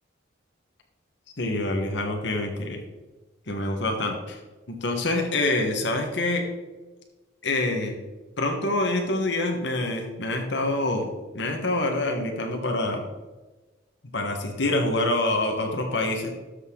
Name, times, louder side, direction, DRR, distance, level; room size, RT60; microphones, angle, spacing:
voice 1, 1.4-2.8 3.5-4.4 4.7-6.5 7.4-8.0 8.4-13.0 14.1-16.4, left 2 dB, 65° left, 2 dB, 1.3 m, -26 dB
13.0 x 6.6 x 3.8 m, 1.2 s
head